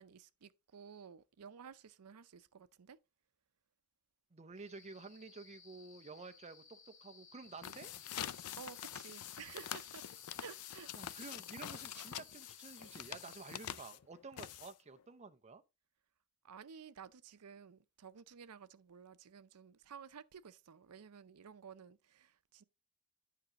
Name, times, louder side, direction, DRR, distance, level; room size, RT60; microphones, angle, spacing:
voice 1, 0.0-3.0 8.6-10.1 10.4-11.2 16.4-22.6, right 7 dB, 90° right, 0.5 m, -54 dB
voice 2, 4.3-7.9 10.9-15.6, right 4 dB, 30° right, 0.6 m, -51 dB
sound 1, 4.5-13.6, left 4 dB, 60° left, 2.2 m, -61 dB
sound 2, 7.5-15.0, left 10 dB, 90° left, 0.5 m, -46 dB
9.3 x 5.9 x 2.9 m
head